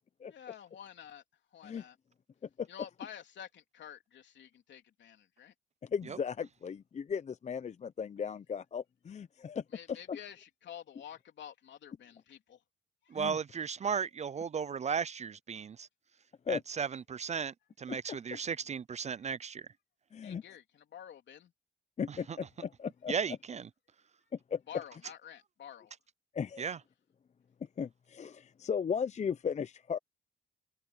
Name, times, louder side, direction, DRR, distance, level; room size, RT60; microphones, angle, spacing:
voice 1, 0.2-1.2 1.5-2.0 2.7-5.5 9.7-12.6 13.0-13.2 19.1-19.3 20.2-21.5 24.7-25.9, left 9 dB, 65° left, 3.5 m, -49 dB
voice 2, 5.8-10.2 13.2-13.4 16.5-16.6 17.9-18.0 18.3-18.4 20.1-20.4 22.0-23.4 24.5-24.6 26.3-26.7 27.8-30.0, left 7 dB, 35° left, 0.6 m, -36 dB
voice 3, 13.1-15.9 16.5-17.5 17.8-19.6 23.1-23.6 26.6-26.8, right 6 dB, 35° right, 0.5 m, -35 dB
open air
cardioid pair, 90°, 20 cm